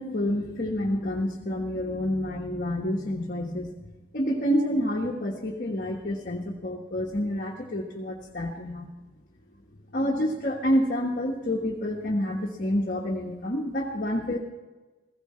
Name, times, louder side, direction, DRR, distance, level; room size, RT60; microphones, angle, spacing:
voice 1, 0.0-3.7 4.1-8.9 9.9-14.4, equal, 45° left, -2 dB, 1.3 m, -28 dB
16.0 x 16.0 x 4.3 m, 1.2 s
head